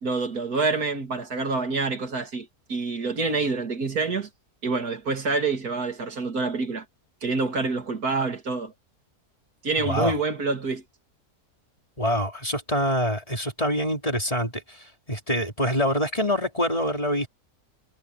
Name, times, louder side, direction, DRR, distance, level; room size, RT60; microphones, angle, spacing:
voice 1, 0.0-4.3 4.6-6.8 7.2-8.7 9.6-10.8, right 4 dB, 75° right, 2.8 m, -27 dB
voice 2, 9.8-10.2 12.0-17.3, equal, 20° left, 3.9 m, -25 dB
omnidirectional pair, 1.6 m